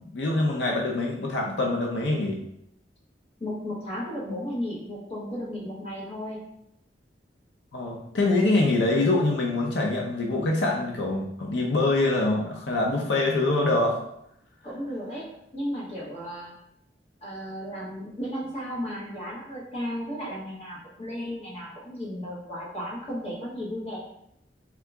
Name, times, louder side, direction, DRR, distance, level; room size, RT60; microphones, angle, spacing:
voice 1, 0.0-2.4 7.7-14.0, left 2 dB, 90° left, 0 dB, 0.6 m, -24 dB
voice 2, 3.4-6.4 14.6-15.3 15.5-16.5 17.2-24.0, equal, 35° left, -5 dB, 1.3 m, -34 dB
3.7 x 2.8 x 3.5 m, 0.77 s
head